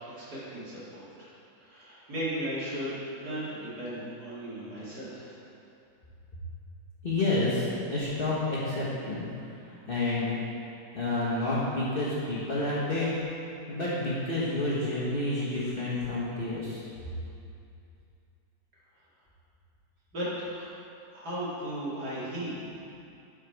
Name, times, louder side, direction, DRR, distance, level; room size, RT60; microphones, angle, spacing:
voice 1, 0.1-1.3 1.6-5.4 20.1-20.7 21.1-22.6, right 1 dB, 60° right, -9 dB, 2.6 m, -36 dB
voice 2, 7.0-9.2 9.9-10.3 10.9-13.1 13.7-16.8, left 2 dB, 35° left, -8 dB, 1.1 m, -29 dB
8.4 x 5.1 x 4.5 m, 2.6 s
omnidirectional pair, 1.9 m